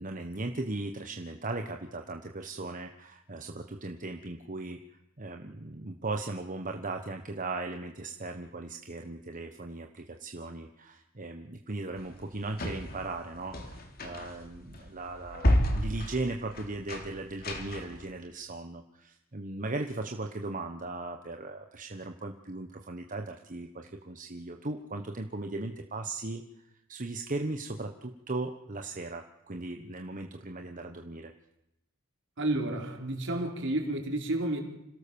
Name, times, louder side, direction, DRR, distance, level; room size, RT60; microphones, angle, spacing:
voice 1, 0.0-4.8 5.2-26.4 26.9-31.3, right 2 dB, 40° right, 5 dB, 1.3 m, -37 dB
sound 1, 12.0-18.0, left 1 dB, 45° left, 3.4 m, -31 dB
voice 2, 32.4-34.6, right 1 dB, 60° right, 3 dB, 4.3 m, -31 dB
27.0 x 17.5 x 7.1 m, 0.88 s
head